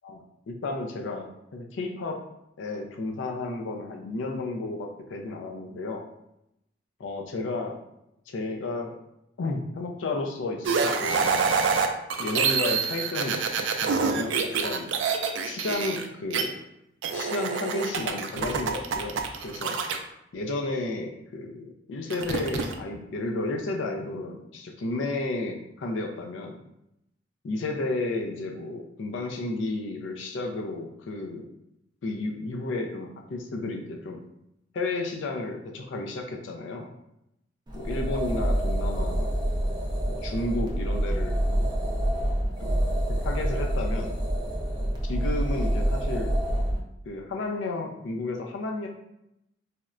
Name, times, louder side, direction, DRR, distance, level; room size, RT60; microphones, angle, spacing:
voice 1, 0.0-2.2 2.6-6.0 7.0-7.8 8.3-8.9 9.4-11.4 12.2-13.4 14.0-14.9 15.4-16.5 17.1-19.8 20.3-26.6 27.4-31.5 32.0-34.2 34.7-36.9 37.7-39.3 40.1-41.6 42.6-42.8 43.1-44.1 45.1-46.3 47.1-48.9, left 2 dB, 85° left, 2 dB, 0.4 m, -32 dB
sound 1, 10.6-16.4 17.0-20.0 22.1-22.7, right 5 dB, 80° right, 0.4 m, -26 dB
sound 2, 37.7-46.8, right 1 dB, 25° right, 0.5 m, -27 dB
4.1 x 2.1 x 2.4 m, 0.83 s
head